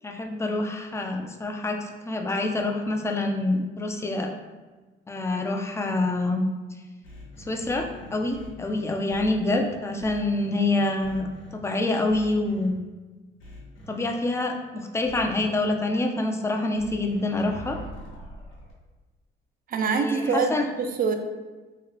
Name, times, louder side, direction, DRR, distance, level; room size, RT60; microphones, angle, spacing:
voice 1, 0.0-4.3 5.1-6.4 7.4-11.3 11.5-12.7 13.9-17.8 19.8-20.6, left 2 dB, 15° left, 2 dB, 0.4 m, -26 dB
sound 1, 7.0-9.6 10.0-10.6 11.0-11.5 12.1-12.7 13.4-14.0 15.0-15.6 16.7-18.7, equal, 90° left, 1.0 m, -43 dB
voice 2, 19.7-21.1, right 5 dB, 45° right, 5 dB, 0.4 m, -25 dB
2.9 x 2.7 x 2.9 m, 1.3 s
cardioid pair, 90°, 20 cm